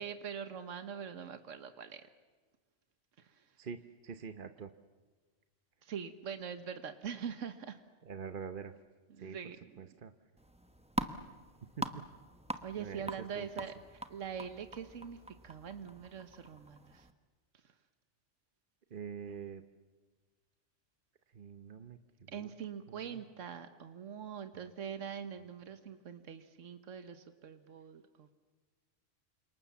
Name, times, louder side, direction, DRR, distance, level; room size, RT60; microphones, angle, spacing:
voice 1, 0.0-2.1 3.2-3.6 5.8-7.8 9.1-10.0 12.6-17.1 17.6-17.7 22.3-28.3, right 7 dB, 80° right, 9 dB, 1.5 m, -44 dB
voice 2, 3.6-4.7 8.0-8.7 9.2-9.4 9.8-10.1 11.8-12.1 12.8-13.1 13.3-13.5 18.9-19.6 21.3-22.5 22.9-23.2, right 6 dB, 45° right, 9 dB, 1.1 m, -45 dB
sound 1, 10.4-17.1, right 1 dB, 5° right, 1.1 m, -43 dB
29.5 x 26.5 x 7.1 m, 1.4 s
omnidirectional pair, 1.3 m